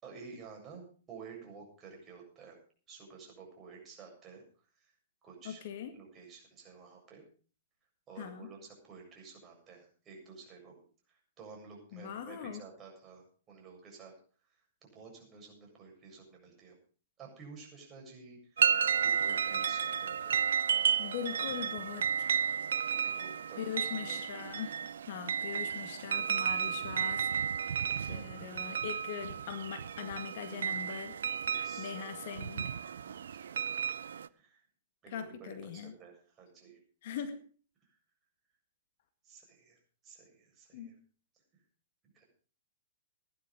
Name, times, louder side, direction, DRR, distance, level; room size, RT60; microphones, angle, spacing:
voice 1, 0.0-2.6 2.9-4.4 4.8-4.9 5.2-5.6 5.9-7.2 8.1-10.7 11.1-14.1 14.5-16.8 17.2-20.4 21.4-21.5 22.9-23.7 24.1-24.2 28.0-28.7 31.5-32.0 33.0-33.9 34.3-34.6 35.0-36.8 37.8-38.0 39.2-40.9 41.5-41.6 42.1-42.2, right 5 dB, 25° right, 0 dB, 7.4 m, -52 dB
voice 2, 5.4-5.9 8.2-8.5 11.9-12.6 21.0-22.4 23.6-27.3 27.6-27.8 28.0-31.2 31.8-32.7 35.1-35.9 37.0-37.4 40.7-40.9, left 8 dB, 55° left, 8 dB, 1.9 m, -41 dB
sound 1, 18.6-34.3, right 7 dB, 70° right, 0.6 m, -33 dB
17.0 x 11.5 x 5.1 m, 0.41 s
figure-of-eight pair, 110°, 0 cm